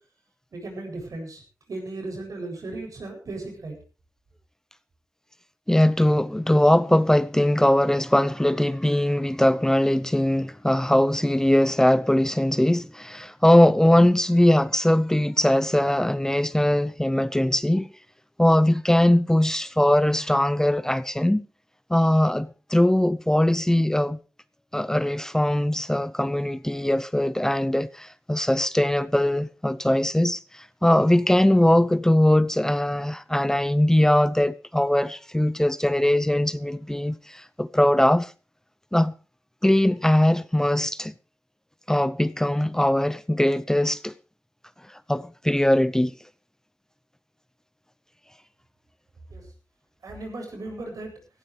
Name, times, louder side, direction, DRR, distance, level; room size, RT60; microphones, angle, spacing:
voice 1, 0.5-1.4 1.7-3.7 49.3-49.5 50.0-51.1, right 2 dB, 75° right, 8.0 m, -36 dB
voice 2, 5.7-17.9 18.4-21.5 21.9-24.2 24.7-38.3 38.9-39.1 39.6-41.1 41.9-44.1 44.9-46.1, left 1 dB, 10° left, 0.7 m, -21 dB
17.0 x 16.5 x 3.5 m
wide cardioid pair, 85°, 6 cm